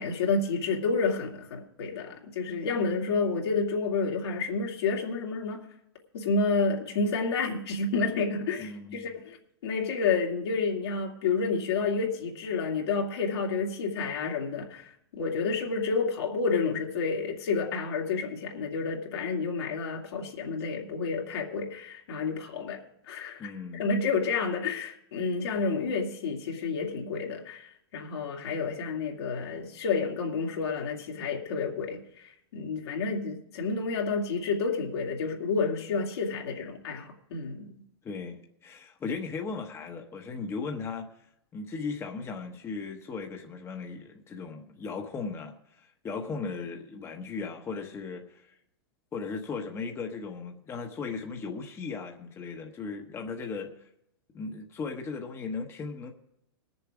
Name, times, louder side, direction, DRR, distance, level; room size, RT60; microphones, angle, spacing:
voice 1, 0.0-5.6 6.1-9.4 9.6-23.4 23.8-37.7, left 4 dB, 75° left, 2.5 m, -30 dB
voice 2, 8.6-9.1 23.4-23.9 38.0-41.1 41.5-48.6 49.1-53.7 54.3-56.1, left 4 dB, 20° left, 1.1 m, -37 dB
19.5 x 7.1 x 4.9 m
hypercardioid pair, 130°, 13 cm